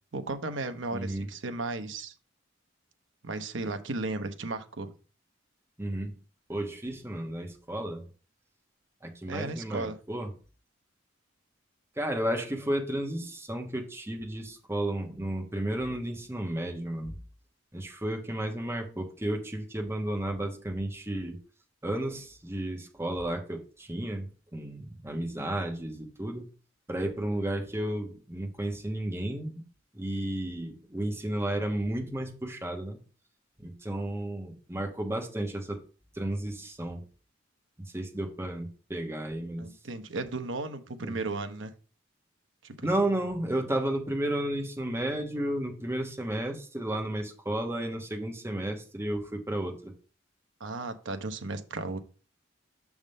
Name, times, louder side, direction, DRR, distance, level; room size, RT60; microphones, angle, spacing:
voice 1, 0.1-2.1 3.2-4.9 9.3-10.0 39.6-41.7 42.6-42.9 50.6-52.0, right 3 dB, 70° right, 8 dB, 0.8 m, -35 dB
voice 2, 0.9-1.3 5.8-6.1 6.5-8.1 9.0-10.3 12.0-17.2 17.7-21.3 21.8-24.2 24.5-26.5 26.9-29.6 29.9-33.0 33.6-35.8 36.1-37.0 37.8-39.7 41.0-41.2 42.8-49.9, right 1 dB, 15° right, 2 dB, 1.1 m, -32 dB
6.3 x 3.6 x 5.3 m, 0.37 s
head